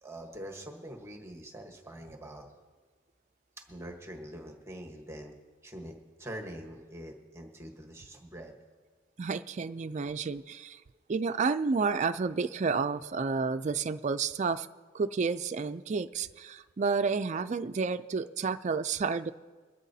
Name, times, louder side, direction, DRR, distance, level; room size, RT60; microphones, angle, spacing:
voice 1, 0.0-2.5 3.7-5.3 5.6-8.5, right 1 dB, 15° right, 2 dB, 1.2 m, -44 dB
voice 2, 9.2-10.8 11.1-14.7 14.9-19.3, right 4 dB, 35° right, 10 dB, 0.4 m, -30 dB
23.0 x 12.0 x 2.8 m, 1.4 s
head